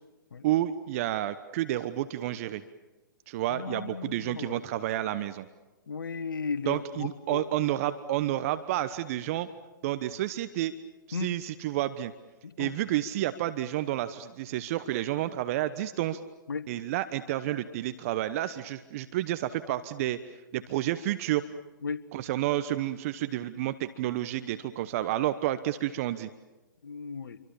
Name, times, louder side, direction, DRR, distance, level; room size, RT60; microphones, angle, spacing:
voice 1, 0.4-2.6 3.3-5.5 6.7-9.5 9.8-10.7 11.1-12.1 12.6-16.2 16.7-21.4 22.1-26.3, right 13 dB, 40° right, 12 dB, 1.1 m, -30 dB
voice 2, 3.5-4.6 5.9-7.4 11.1-11.3 12.4-12.7 16.5-16.7 21.8-22.0 26.8-27.4, left 5 dB, 70° left, 11 dB, 1.7 m, -35 dB
29.0 x 24.5 x 7.2 m, 1.1 s
figure-of-eight pair, 125°, 11 cm